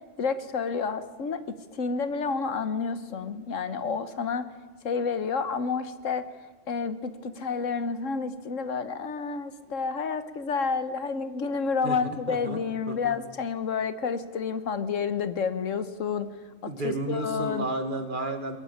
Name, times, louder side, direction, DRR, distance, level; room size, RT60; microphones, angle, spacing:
voice 1, 0.2-1.4 1.7-4.5 4.8-6.3 6.7-16.3 16.6-17.7, left 5 dB, 75° left, 12 dB, 1.4 m, -30 dB
voice 2, 11.8-13.2 16.7-18.6, right 2 dB, 40° right, 7 dB, 1.9 m, -32 dB
21.0 x 14.5 x 9.8 m, 1.4 s
omnidirectional pair, 1.3 m